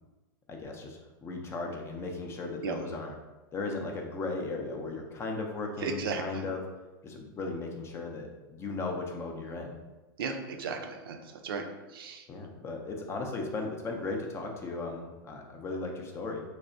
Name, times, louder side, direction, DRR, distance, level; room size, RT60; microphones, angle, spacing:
voice 1, 0.5-3.1 3.5-6.6 7.0-9.8 12.3-16.4, left 3 dB, 20° left, 2 dB, 0.4 m, -36 dB
voice 2, 5.8-6.4 10.2-11.2 11.4-11.7 11.9-12.2, right 5 dB, 80° right, 5 dB, 0.4 m, -34 dB
3.3 x 2.0 x 2.5 m, 1.1 s
hypercardioid pair, 125°, 12 cm